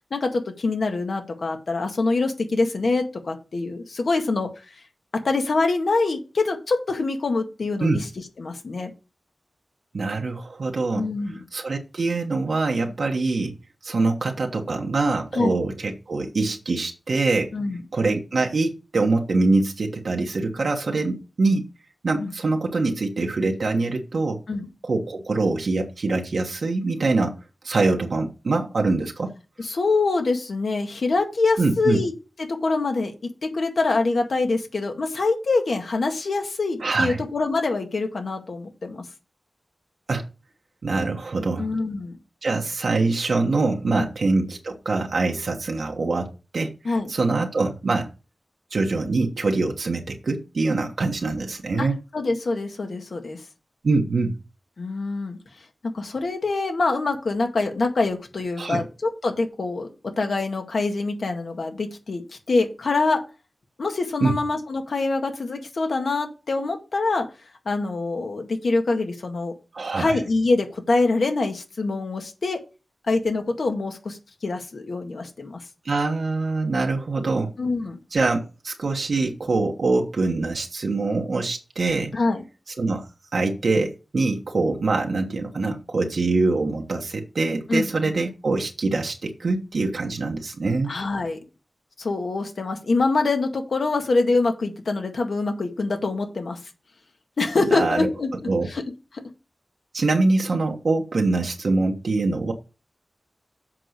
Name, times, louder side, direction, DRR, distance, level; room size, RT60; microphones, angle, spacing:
voice 1, 0.1-4.6 5.1-8.1 8.4-8.9 10.9-11.4 15.3-15.6 17.5-17.8 22.2-22.3 24.5-24.7 29.6-32.1 32.4-39.0 41.6-42.2 44.0-44.1 46.8-47.1 51.8-51.9 52.1-53.4 54.8-55.4 55.8-62.2 62.5-63.2 63.8-67.3 67.6-69.5 70.0-72.6 73.1-75.6 77.6-78.0 82.1-82.4 87.7-87.9 90.9-91.4 92.0-96.6 97.4-98.3 98.7-98.8 99.1-99.2, left 3 dB, 75° left, 1.8 m, -25 dB
voice 2, 9.9-11.1 11.5-13.5 13.8-17.5 17.9-21.6 22.0-24.4 24.8-27.4 27.6-29.3 31.6-32.0 36.8-37.2 40.1-40.3 40.8-41.7 42.4-46.8 47.1-48.1 48.7-52.0 53.8-54.4 58.6-58.8 64.2-64.3 69.7-70.2 75.8-77.5 78.1-82.1 82.8-90.9 97.7-98.1 98.5-98.7 99.9-102.5, right 3 dB, 80° right, 1.3 m, -24 dB
7.6 x 5.3 x 6.5 m
wide cardioid pair, 85°, 0 cm